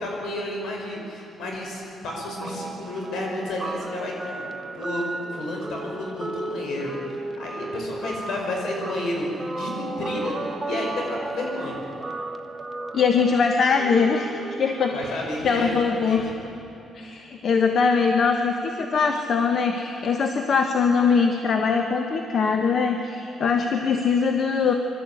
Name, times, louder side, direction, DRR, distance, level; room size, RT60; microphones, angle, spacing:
voice 1, 0.0-4.5 4.7-5.0 5.3-11.8 14.9-16.2, left 1 dB, 75° left, 0 dB, 5.6 m, -31 dB
Guitar, 2.4-15.1, right 2 dB, 25° right, 1.2 m, -35 dB
voice 2, 12.9-16.2 16.9-24.7, left 5 dB, 55° left, 4 dB, 1.3 m, -22 dB
23.5 x 13.0 x 8.5 m, 3.0 s
cardioid pair, 90°, 0 cm